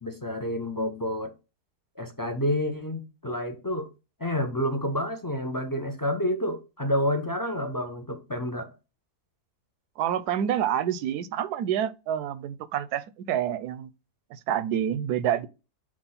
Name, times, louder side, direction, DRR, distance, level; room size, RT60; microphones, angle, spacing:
voice 1, 0.0-1.3 2.0-3.9 4.2-8.7, left 1 dB, 30° left, 0.3 m, -29 dB
voice 2, 10.0-13.9 14.3-15.5, right 10 dB, 85° right, 1.1 m, -28 dB
6.2 x 3.1 x 5.5 m
omnidirectional pair, 1.7 m